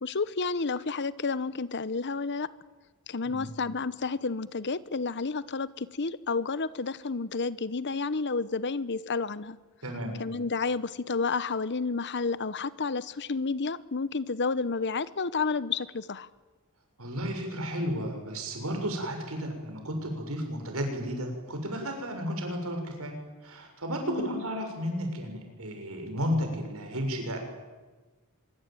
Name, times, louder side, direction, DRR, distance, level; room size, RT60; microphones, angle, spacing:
voice 1, 0.0-2.5 3.1-9.6 10.2-16.3 24.1-24.4, left 4 dB, 55° left, 17 dB, 1.0 m, -31 dB
voice 2, 9.8-10.2 17.0-23.2 23.4-27.4, equal, 70° right, 4 dB, 7.0 m, -33 dB
24.5 x 22.5 x 9.3 m, 1.3 s
head